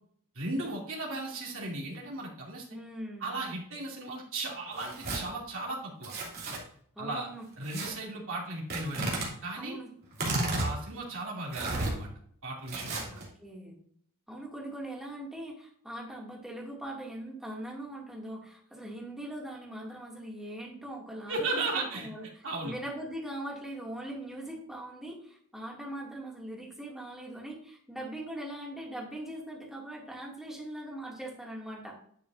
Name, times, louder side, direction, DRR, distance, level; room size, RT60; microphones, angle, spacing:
voice 1, 0.3-2.6 3.2-6.1 7.0-7.3 7.6-9.1 9.4-9.8 10.6-12.1 12.4-13.2 21.3-22.1 22.4-22.8, right 2 dB, 65° right, -2 dB, 2.8 m, -36 dB
voice 2, 2.7-3.3 6.9-7.4 9.6-9.9 13.1-13.8 14.3-22.3 22.6-32.0, right 1 dB, ahead, -3 dB, 2.4 m, -41 dB
Tearing, 4.7-5.2 6.0-6.6 7.7-7.9 8.7-9.3 10.1-10.7 11.5-11.9 12.7-13.2, right 2 dB, 45° right, 2.9 m, -32 dB
10.5 x 6.9 x 2.6 m, 0.63 s
head